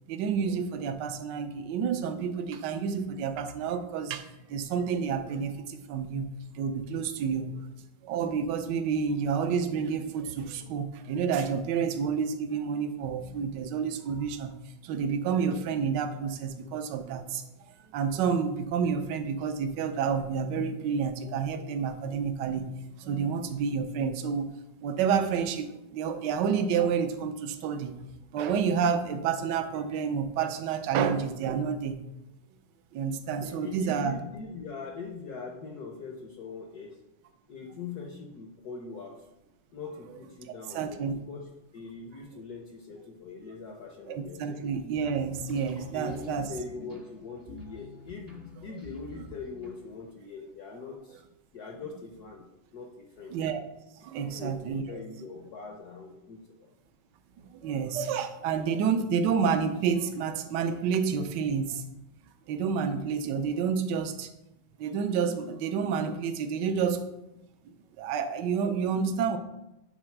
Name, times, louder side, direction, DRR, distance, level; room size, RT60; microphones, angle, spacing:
voice 1, 0.1-6.3 6.5-7.5 8.0-14.5 14.8-17.4 17.9-22.7 23.0-24.5 24.8-27.9 28.3-32.0 32.9-34.1 40.7-41.1 44.1-46.5 53.3-53.6 54.0-54.8 57.5-61.8 62.5-64.3 64.8-67.1 68.0-69.4, right 6 dB, 65° right, 8 dB, 1.2 m, -29 dB
voice 2, 33.4-37.0 37.5-39.2 39.7-44.7 45.8-51.2 51.5-53.4 54.2-56.7, left 4 dB, 65° left, 1 dB, 1.0 m, -42 dB
sound 1, 44.9-50.1, left 2 dB, 30° right, 0.7 m, -46 dB
8.8 x 3.8 x 5.9 m, 0.93 s
omnidirectional pair, 2.4 m